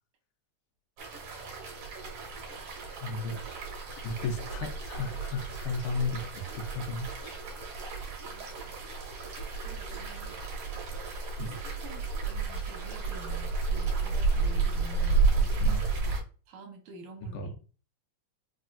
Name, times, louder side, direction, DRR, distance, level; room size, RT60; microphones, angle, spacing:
sound 1, 1.0-16.2, right 4 dB, 60° right, 1.9 m, -32 dB
voice 1, 2.8-3.6 4.0-7.4 11.4-11.6 15.6-15.9 17.3-17.6, left 3 dB, 85° left, 3 dB, 2.3 m, -35 dB
voice 2, 8.2-8.7 9.6-10.4 11.6-16.2 16.5-17.6, right 2 dB, 75° right, 3 dB, 2.1 m, -49 dB
5.1 x 2.6 x 2.3 m, 0.37 s
omnidirectional pair, 3.5 m